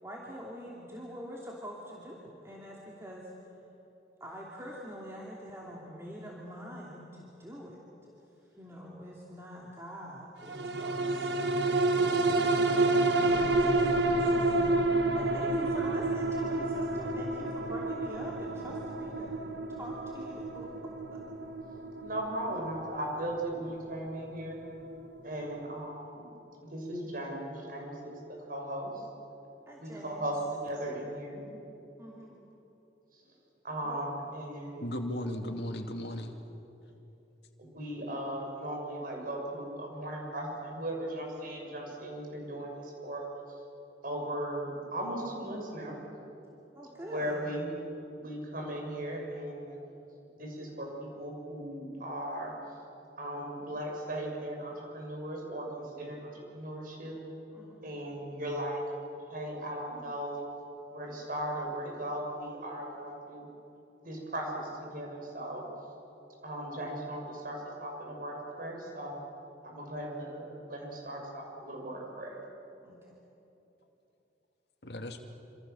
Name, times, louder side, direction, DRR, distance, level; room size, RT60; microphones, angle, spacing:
voice 1, 0.0-3.5 4.2-7.8 8.4-11.4 11.9-19.4 19.7-20.9 29.7-30.3 32.0-32.4 33.8-34.0 46.7-47.4 57.5-57.9 72.8-73.1, equal, 15° right, -4 dB, 2.8 m, -45 dB
sound 1, 10.5-25.2 25.6-25.7, right 2 dB, 75° right, 1.6 m, -29 dB
voice 2, 21.7-24.6 25.2-26.3 26.6-28.2 28.5-29.0 29.8-31.4 33.1-33.2 33.6-34.9 37.6-43.2 44.0-46.0 47.0-47.7 48.2-49.8 50.4-52.5 53.2-57.2 57.8-58.8 59.3-60.5 60.9-63.5 64.0-65.6 66.4-69.2 69.6-72.4, right 1 dB, 50° right, 0 dB, 6.9 m, -37 dB
voice 3, 34.8-36.4 74.8-75.3, left 1 dB, 65° left, 4 dB, 2.4 m, -36 dB
27.0 x 27.0 x 7.1 m, 3.0 s
head